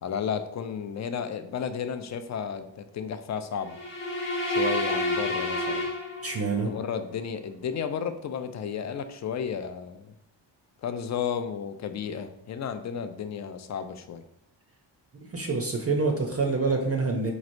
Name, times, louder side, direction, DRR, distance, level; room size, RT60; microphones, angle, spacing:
voice 1, 0.0-3.8 4.5-5.9 6.6-10.1 10.8-14.2, left 7 dB, 40° left, 9 dB, 0.4 m, -33 dB
sound 1, 3.7-6.7, left 1 dB, 70° left, 0.9 m, -29 dB
voice 2, 6.2-6.7 15.3-17.3, right 3 dB, 35° right, 2 dB, 0.5 m, -26 dB
4.9 x 3.1 x 2.5 m, 0.76 s
cardioid pair, 90°, 45 cm